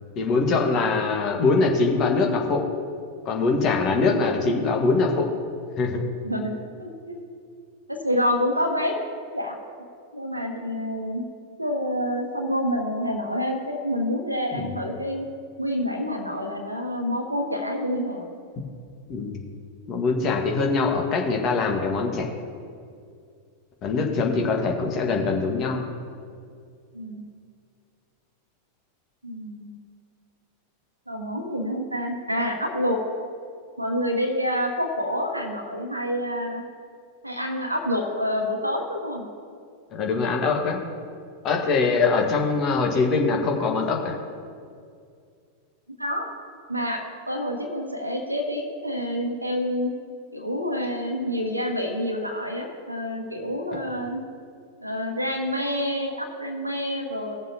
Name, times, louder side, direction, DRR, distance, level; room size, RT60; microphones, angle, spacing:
voice 1, 0.1-2.7 3.2-5.3 5.8-6.0 14.5-14.7 19.1-19.4 19.9-22.3 23.8-25.8 39.9-40.8 41.4-44.2, left 4 dB, 35° left, 1 dB, 1.6 m, -23 dB
voice 2, 6.2-7.2 7.9-9.0 9.3-9.5 10.1-11.2 11.6-15.3 15.6-18.3 26.9-27.2 29.2-29.8 31.1-33.0 33.8-36.6 37.2-39.2 46.0-46.3 46.7-47.0 47.3-49.9 50.3-54.2 54.8-57.3, equal, 85° right, 3 dB, 1.3 m, -28 dB
17.5 x 7.2 x 2.9 m, 2.2 s
figure-of-eight pair, 90°, 0 cm